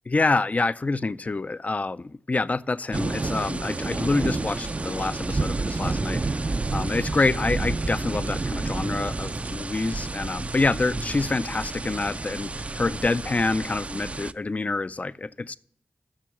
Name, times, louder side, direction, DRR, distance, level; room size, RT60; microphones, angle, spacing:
voice 1, 0.1-15.6, left 3 dB, 40° left, 0.4 m, -27 dB
sound 1, 2.9-14.3, right 3 dB, 35° right, 0.4 m, -30 dB
sound 2, 3.4-14.2 14.5-14.8, right 3 dB, 85° right, 1.2 m, -53 dB
7.5 x 6.2 x 7.0 m
cardioid pair, 50°, 4 cm